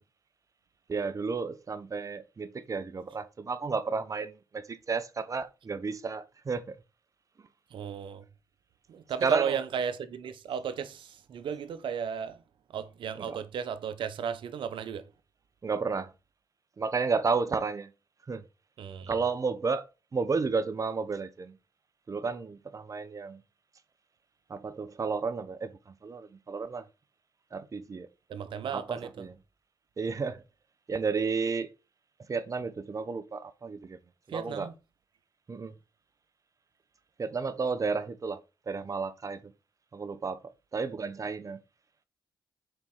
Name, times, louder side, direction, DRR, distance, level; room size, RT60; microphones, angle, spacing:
voice 1, 0.9-6.8 9.2-9.6 13.2-13.4 15.6-16.1 16.8-17.9 18.3-18.4 19.1-19.8 20.1-21.5 22.1-23.4 24.5-25.7 26.0-26.8 27.5-28.1 28.7-29.3 30.0-30.4 30.9-31.7 32.3-34.0 34.3-34.7 35.5-35.7 37.2-38.4 38.7-39.4 39.9-41.6, right 4 dB, 40° right, 0.9 m, -32 dB
voice 2, 7.7-8.2 8.9-12.4 12.7-15.0 18.8-19.1 28.3-29.1 34.3-34.7, right 7 dB, 70° right, 1.0 m, -34 dB
6.8 x 4.3 x 3.8 m
cardioid pair, 65°, 9 cm